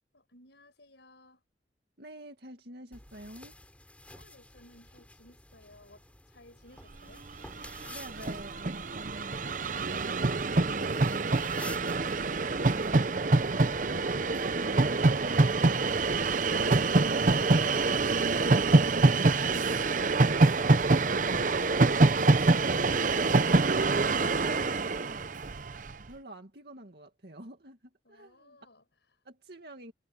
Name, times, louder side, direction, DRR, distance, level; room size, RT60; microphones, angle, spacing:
voice 1, 0.1-1.4 4.1-7.3 28.0-29.2, left 2 dB, 85° left, 5.5 m, -58 dB
voice 2, 2.0-3.5 7.9-13.6 14.2-17.2 21.8-23.4 23.7-25.4 26.1-28.6 29.2-29.9, right 1 dB, 65° right, 2.3 m, -46 dB
sound 1, 2.9-13.9, left 1 dB, 10° left, 7.8 m, -52 dB
Train, 7.3-7.4 7.5-25.9, right 3 dB, 45° right, 0.8 m, -25 dB
head